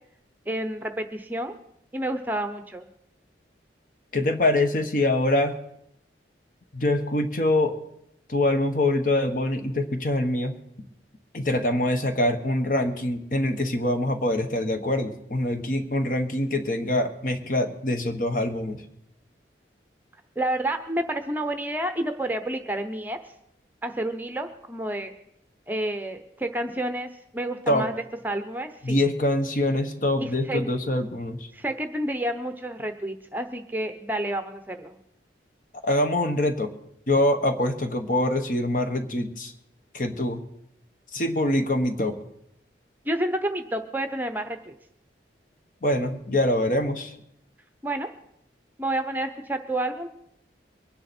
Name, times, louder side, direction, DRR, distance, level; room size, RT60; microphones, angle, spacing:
voice 1, 0.5-1.6 1.9-2.9 20.4-23.2 23.8-25.1 25.7-27.9 28.2-29.0 30.2-30.6 31.5-35.0 43.1-44.7 47.8-48.1 48.8-50.1, right 1 dB, 10° right, 7 dB, 0.8 m, -29 dB
voice 2, 4.1-5.6 6.7-7.7 8.3-10.5 11.3-18.8 27.7-27.9 28.8-31.5 35.8-36.7 37.1-39.5 39.9-40.4 41.1-42.1 45.8-47.1, left 1 dB, 45° left, 6 dB, 1.3 m, -24 dB
23.0 x 10.0 x 4.4 m, 0.77 s
head